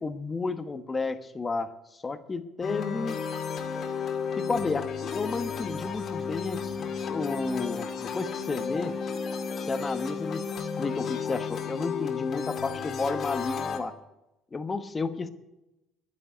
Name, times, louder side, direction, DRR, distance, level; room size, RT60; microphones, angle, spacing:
voice 1, 0.0-1.7 2.0-3.2 4.4-6.7 7.0-8.9 9.7-10.4 10.8-13.9 14.5-15.3, left 3 dB, 20° left, 11 dB, 1.1 m, -32 dB
sound 1, 2.6-13.8, left 6 dB, 40° left, 2.2 m, -33 dB
11.0 x 9.8 x 9.1 m, 0.94 s
cardioid pair, 125°, 0 cm